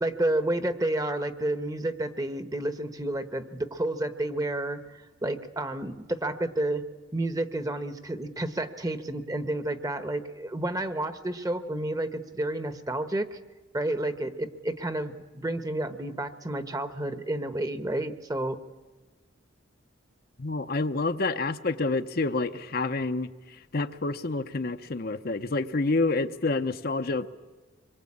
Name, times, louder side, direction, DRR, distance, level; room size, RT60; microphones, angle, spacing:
voice 1, 0.0-6.9 7.1-13.4 13.7-18.6, right 1 dB, 20° right, 11 dB, 1.1 m, -30 dB
voice 2, 20.4-23.3 23.7-27.3, left 3 dB, 50° left, 8 dB, 0.8 m, -28 dB
26.0 x 23.0 x 8.7 m, 1.2 s
head